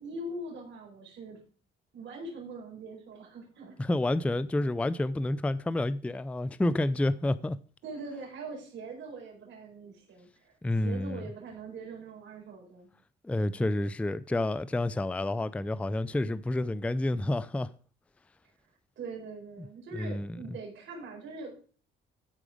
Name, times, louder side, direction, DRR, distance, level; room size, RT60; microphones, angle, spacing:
voice 1, 0.0-1.4 1.9-3.8 7.8-12.9 19.0-21.7, right 3 dB, 70° right, 4.4 m, -42 dB
voice 2, 3.8-7.6 10.6-11.3 13.2-17.7 19.9-20.4, left 1 dB, 5° left, 0.4 m, -29 dB
13.0 x 4.9 x 4.9 m
cardioid pair, 90°, 20 cm